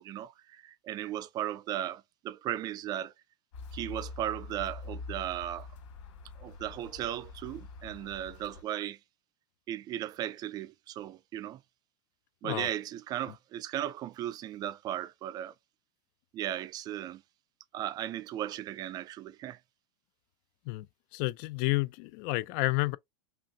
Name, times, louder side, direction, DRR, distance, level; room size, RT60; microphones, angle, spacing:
voice 1, 0.0-3.1 3.7-5.7 6.4-9.0 9.7-11.6 12.4-15.5 16.3-17.2 17.7-19.6, right 12 dB, 25° right, 0.4 m, -36 dB
sound 1, 3.5-8.6, left 3 dB, 85° left, 2.5 m, -45 dB
voice 2, 21.1-23.0, left 21 dB, 45° left, 0.4 m, -30 dB
5.7 x 2.5 x 2.7 m
supercardioid pair, 150°, 15 cm